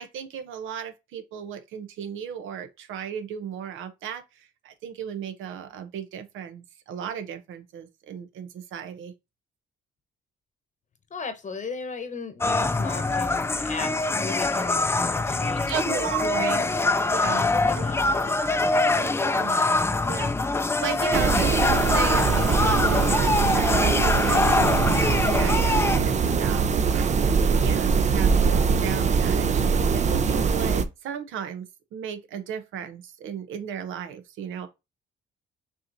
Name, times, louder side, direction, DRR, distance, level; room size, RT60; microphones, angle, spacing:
voice 1, 0.0-9.1 15.7-16.6 17.1-17.4 17.7-18.2 19.0-19.8 20.1-20.3 20.8-34.7, right 8 dB, 85° right, 0.8 m, -35 dB
voice 2, 11.1-15.7 16.7-16.9 17.2-19.0 19.3-19.7, left 4 dB, 40° left, 1.0 m, -37 dB
sound 1, 12.4-26.0, left 3 dB, 15° left, 0.3 m, -24 dB
sound 2, 21.1-30.8, right 5 dB, 35° right, 0.5 m, -22 dB
6.0 x 3.0 x 2.6 m
cardioid pair, 90°, 20 cm